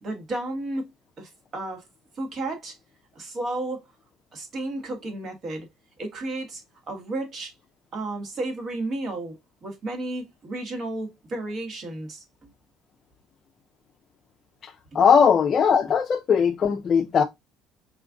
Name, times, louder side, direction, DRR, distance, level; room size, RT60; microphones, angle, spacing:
voice 1, 0.0-0.9 1.2-1.8 2.1-2.8 3.1-3.8 4.3-5.7 6.0-7.5 7.9-9.4 9.6-12.5 14.9-15.0, right 2 dB, 40° right, 1.6 m, -32 dB
voice 2, 15.0-17.2, left 6 dB, 40° left, 0.4 m, -19 dB
4.3 x 2.5 x 3.6 m
cardioid pair, 110°, 0 cm